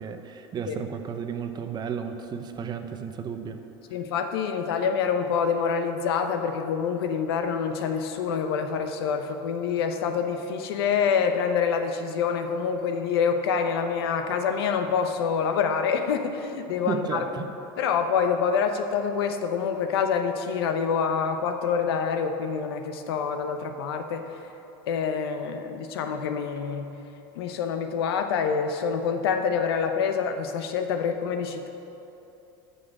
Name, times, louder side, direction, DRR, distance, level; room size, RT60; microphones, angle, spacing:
voice 1, 0.0-3.6 16.9-17.5, right 6 dB, 35° right, 7 dB, 0.8 m, -33 dB
voice 2, 3.9-17.2 17.8-24.2 24.9-26.9 27.4-31.7, left 6 dB, 90° left, 7 dB, 0.8 m, -26 dB
9.4 x 5.6 x 7.5 m, 2.9 s
supercardioid pair, 110°, 13 cm